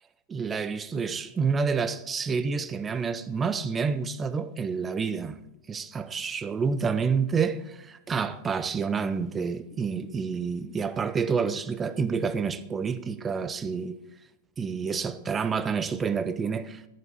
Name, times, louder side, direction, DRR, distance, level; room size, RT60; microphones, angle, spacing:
voice 1, 0.3-5.4 5.7-14.0 14.6-16.8, right 5 dB, 20° right, 0.6 m, -28 dB
11.0 x 9.4 x 4.3 m
figure-of-eight pair, 90°, 0 cm